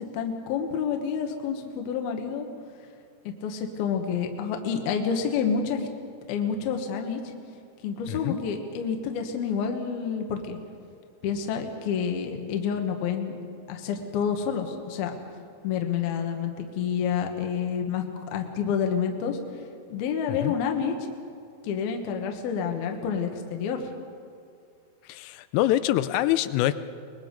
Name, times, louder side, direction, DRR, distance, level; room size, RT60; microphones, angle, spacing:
voice 1, 0.0-2.5 3.3-5.9 6.3-7.2 7.8-10.6 11.2-13.4 13.7-15.2 15.6-19.4 19.9-20.9 21.6-23.9, left 7 dB, 65° left, 4 dB, 2.7 m, -28 dB
voice 2, 8.1-8.4 20.3-20.6 25.0-26.8, left 14 dB, 85° left, 13 dB, 3.3 m, -25 dB
24.5 x 21.0 x 5.2 m, 2.4 s
omnidirectional pair, 5.8 m